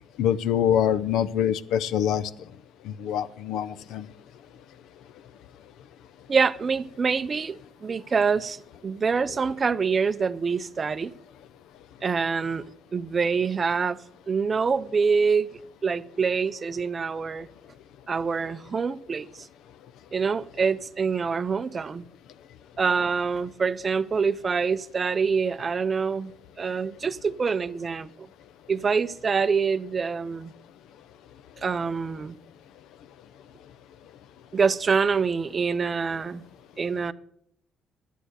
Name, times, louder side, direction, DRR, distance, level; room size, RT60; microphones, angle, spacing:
voice 1, 0.2-2.3 2.9-4.1, left 9 dB, 75° left, 0.6 m, -25 dB
voice 2, 6.3-8.6 8.8-11.1 12.0-12.6 12.9-14.0 14.3-15.5 15.8-17.5 18.1-19.3 20.1-22.0 22.8-26.3 26.6-28.1 28.7-30.5 31.6-32.3 34.5-36.4 36.8-37.1, right 5 dB, 25° right, 0.5 m, -25 dB
11.5 x 10.0 x 8.0 m
cardioid pair, 170°, 0 cm